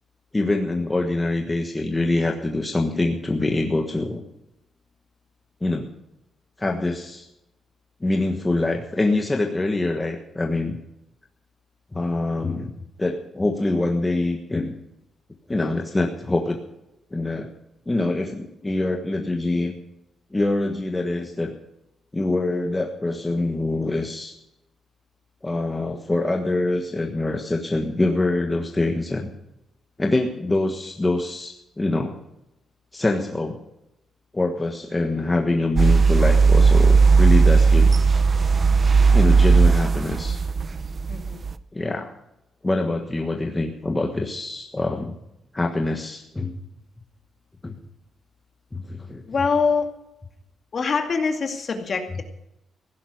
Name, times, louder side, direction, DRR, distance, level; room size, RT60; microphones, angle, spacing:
voice 1, 0.3-4.2 5.6-5.9 6.6-7.3 8.0-10.8 11.9-12.7 13.0-14.7 15.5-16.6 17.1-17.5 17.9-19.7 20.3-21.5 22.1-24.4 25.4-29.3 30.0-32.1 32.9-33.6 34.3-37.9 39.1-40.4 41.7-42.1 42.6-45.1 45.5-46.5 47.6-47.8 48.7-49.2, left 2 dB, 10° left, 1 dB, 1.4 m, -24 dB
sound 1, 35.8-41.5, right 5 dB, 30° right, 0.6 m, -16 dB
voice 2, 41.1-41.4 49.3-49.9 50.7-52.2, left 5 dB, 35° left, 4 dB, 2.2 m, -24 dB
16.0 x 12.0 x 6.4 m, 0.86 s
wide cardioid pair, 165°, 0 cm